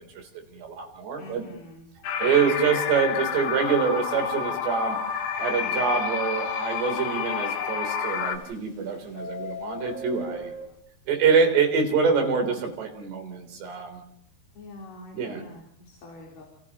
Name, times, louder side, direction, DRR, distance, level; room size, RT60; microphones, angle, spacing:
voice 1, 0.0-1.5 2.2-5.0 5.4-10.5 11.1-14.0 15.1-15.4, right 5 dB, 80° right, 4 dB, 5.8 m, -25 dB
voice 2, 1.2-1.9 14.6-16.4, left 2 dB, 55° left, -2 dB, 5.3 m, -45 dB
sound 1, 2.0-8.4, left 7 dB, 80° left, 3.6 m, -29 dB
Subway metro underground, 4.9-5.0 5.5-5.6 8.0-8.7 9.0-10.7, left 2 dB, 25° left, 3.0 m, -38 dB
29.5 x 29.5 x 3.1 m, 0.65 s
omnidirectional pair, 4.8 m